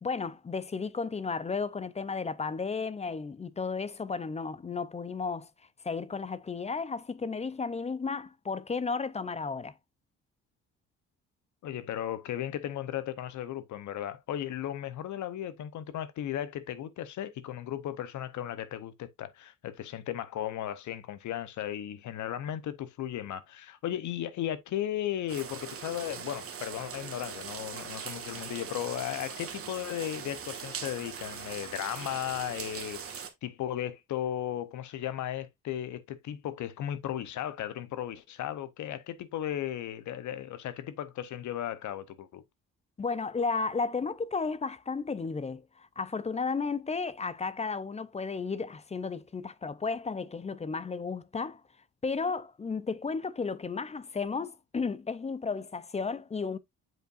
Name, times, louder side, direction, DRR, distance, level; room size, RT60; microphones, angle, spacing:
voice 1, 0.0-5.5 5.8-9.7 43.0-51.6 52.0-56.6, left 4 dB, 20° left, 0.5 m, -33 dB
voice 2, 11.6-42.4, left 11 dB, 70° left, 0.8 m, -36 dB
sound 1, 25.3-33.3, right 7 dB, 50° right, 1.5 m, -41 dB
7.6 x 5.4 x 2.5 m
cardioid pair, 90°, 30 cm